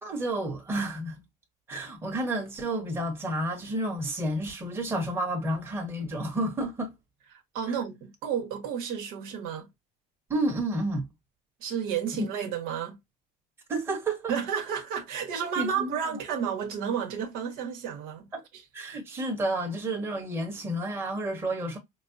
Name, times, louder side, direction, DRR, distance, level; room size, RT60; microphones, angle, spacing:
voice 1, 0.0-1.2 1.7-6.9 10.3-11.1 13.7-14.3 15.6-15.9 18.3-18.4 18.7-21.8, right 1 dB, 15° right, 1.3 m, -30 dB
voice 2, 7.5-9.7 11.6-13.0 14.3-18.6, right 7 dB, 70° right, 1.2 m, -32 dB
5.1 x 2.0 x 2.6 m
cardioid pair, 155°, 16 cm